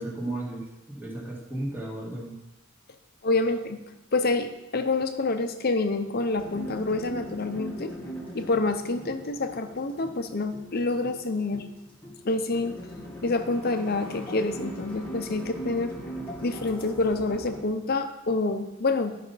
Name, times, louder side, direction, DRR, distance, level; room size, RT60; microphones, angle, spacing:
voice 1, 0.0-2.3, right 1 dB, 10° right, -3 dB, 2.0 m, -34 dB
voice 2, 3.2-3.8 4.1-7.9 8.3-11.7 12.2-12.8 13.2-15.9 16.4-19.2, left 3 dB, 50° left, 7 dB, 0.7 m, -27 dB
sound 1, 6.3-17.6, right 1 dB, 10° left, 1.7 m, -40 dB
12.0 x 5.7 x 4.1 m, 0.95 s
head